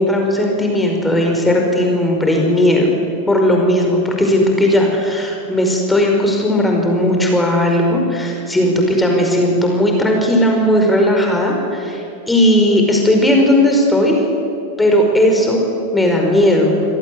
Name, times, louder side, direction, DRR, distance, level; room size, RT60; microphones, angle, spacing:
voice 1, 0.0-2.9 3.3-14.2 14.8-15.6 15.9-16.7, left 1 dB, 5° left, 1 dB, 5.2 m, -15 dB
28.0 x 17.5 x 9.6 m, 2.6 s
figure-of-eight pair, 90°, 0 cm